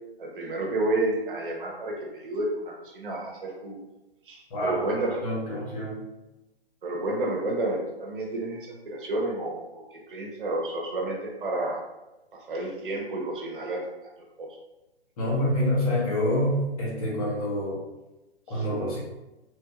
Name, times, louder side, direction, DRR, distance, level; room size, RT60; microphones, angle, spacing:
voice 1, 0.2-3.7 4.2-5.2 6.8-11.8 12.3-13.8 14.4-14.5 18.5-18.6, right 2 dB, 55° right, -1 dB, 0.8 m, -30 dB
voice 2, 4.5-4.9 5.2-6.0 15.2-17.8 18.5-19.0, left 1 dB, 35° left, -5 dB, 1.1 m, -27 dB
3.1 x 2.6 x 2.4 m, 1.0 s
figure-of-eight pair, 135°, 32 cm